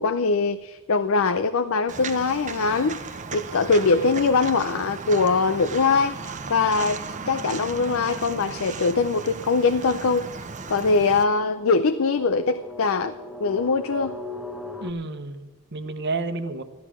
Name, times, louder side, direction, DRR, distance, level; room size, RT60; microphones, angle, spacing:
voice 1, 0.0-10.3 10.7-13.1 13.4-14.2, left 4 dB, 65° left, 11 dB, 0.6 m, -22 dB
Walk footsteps, 1.9-11.2, right 4 dB, 35° right, 0.8 m, -36 dB
sound 1, 9.3-14.9, left 2 dB, ahead, 1.0 m, -40 dB
voice 2, 14.8-16.6, right 3 dB, 50° right, 9 dB, 1.1 m, -30 dB
13.5 x 12.0 x 6.2 m, 1.3 s
head